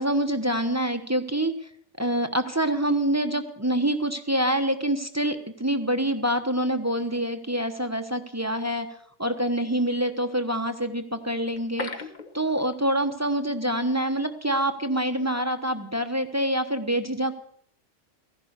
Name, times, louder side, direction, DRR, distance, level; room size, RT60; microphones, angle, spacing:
voice 1, 0.0-1.5 2.0-8.9 9.2-11.9 12.3-17.3, right 1 dB, 15° right, 7 dB, 1.0 m, -26 dB
sound 1, 11.5-13.3 13.5-13.6 14.1-14.2, left 3 dB, 40° left, 1.2 m, -37 dB
15.0 x 11.5 x 6.8 m, 0.67 s
omnidirectional pair, 1.3 m